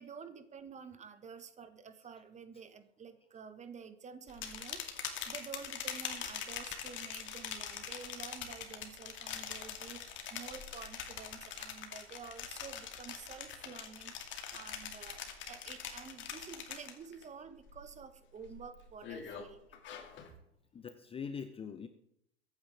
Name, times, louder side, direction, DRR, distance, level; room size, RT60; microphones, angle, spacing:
voice 1, 0.0-19.6, right 6 dB, 20° right, 10 dB, 1.4 m, -50 dB
sound 1, 4.3-17.2 17.6-18.0 18.4-20.3, left 8 dB, 35° left, 2.3 m, -43 dB
voice 2, 20.7-21.9, left 6 dB, 15° left, 10 dB, 0.8 m, -43 dB
23.0 x 9.3 x 3.5 m, 0.73 s
hypercardioid pair, 95°, 34 cm